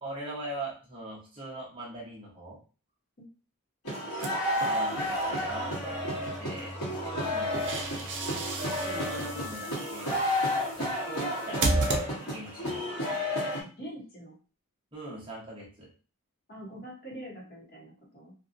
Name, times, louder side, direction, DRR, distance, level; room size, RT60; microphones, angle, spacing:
voice 1, 0.0-2.6 4.4-6.8 7.0-7.6 8.8-10.2 10.7-11.6 12.2-12.8 14.9-15.9, right 1 dB, 25° right, -5 dB, 0.9 m, -41 dB
sound 1, 3.8-13.6, left 1 dB, 75° left, 1.1 m, -31 dB
sound 2, 4.2-5.3 7.2-12.6, right 3 dB, 55° right, 0.5 m, -34 dB
sound 3, 5.5-9.5, left 1 dB, 5° left, 0.3 m, -42 dB
voice 2, 12.6-13.2 13.8-14.4 16.5-18.3, right 1 dB, 45° left, -3 dB, 1.0 m, -45 dB
2.7 x 2.2 x 2.5 m, 0.37 s
head